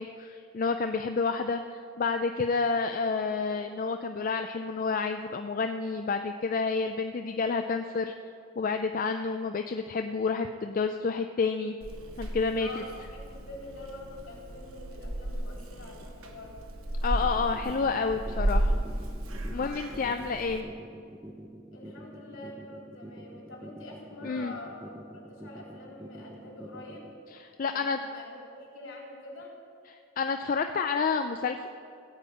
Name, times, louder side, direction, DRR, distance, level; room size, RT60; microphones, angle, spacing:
voice 1, 0.0-8.1 8.6-11.7 12.2-12.7 17.0-18.7 19.5-20.7 24.2-24.5 27.3-28.0 29.9-31.7, left 4 dB, 40° left, 7 dB, 0.3 m, -29 dB
Purr / Meow, 11.8-20.6, right 1 dB, 75° right, 1.2 m, -34 dB
voice 2, 12.6-16.6 19.5-20.2 21.7-27.1 27.7-29.5, left 2 dB, 65° left, -3 dB, 3.4 m, -46 dB
sound 1, 17.1-27.1, right 1 dB, 15° right, 0.6 m, -45 dB
15.5 x 5.4 x 8.4 m, 2.5 s
head